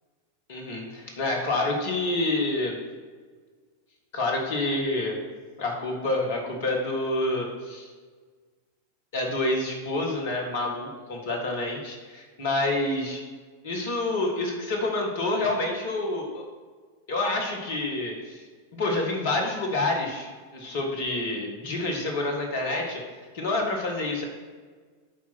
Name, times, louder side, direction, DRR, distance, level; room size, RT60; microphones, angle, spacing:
voice 1, 0.5-2.7 4.1-5.2 5.6-7.9 9.1-13.2 13.6-16.4 17.1-18.4 18.7-23.0 23.3-24.2, left 2 dB, 55° left, 1 dB, 2.0 m, -28 dB
8.6 x 4.7 x 6.1 m, 1.5 s
figure-of-eight pair, 90°, 0 cm